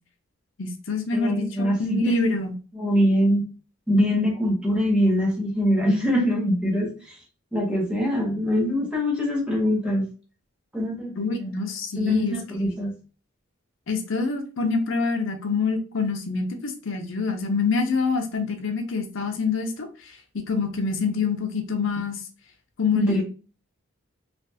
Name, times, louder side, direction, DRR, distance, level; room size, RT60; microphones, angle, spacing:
voice 1, 0.6-2.6 11.2-12.4 13.9-22.2 22.8-23.2, left 4 dB, 65° left, 5 dB, 0.6 m, -26 dB
voice 2, 1.1-2.0 2.7-3.4 3.9-7.2 7.5-10.0 10.7-11.4 12.0-12.9 23.0-23.2, equal, 5° right, -2 dB, 0.9 m, -23 dB
3.2 x 2.3 x 2.7 m, 0.36 s
head